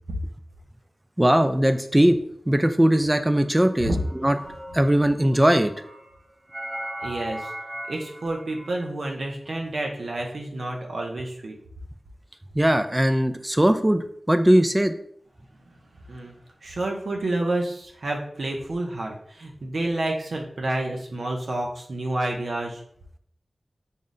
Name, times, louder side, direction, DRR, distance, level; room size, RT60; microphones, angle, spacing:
voice 1, 1.2-2.2 2.5-4.4 4.7-5.7 12.5-14.9, right 1 dB, 15° right, 8 dB, 0.3 m, -20 dB
sound 1, 3.2-4.9 5.3-8.9, right 1 dB, 65° right, 1.2 m, -38 dB
voice 2, 7.0-7.5 7.9-11.6 16.1-16.3 16.6-22.8, right 2 dB, 80° right, 0 dB, 0.6 m, -29 dB
5.4 x 2.0 x 3.7 m, 0.64 s
wide cardioid pair, 65°, 0 cm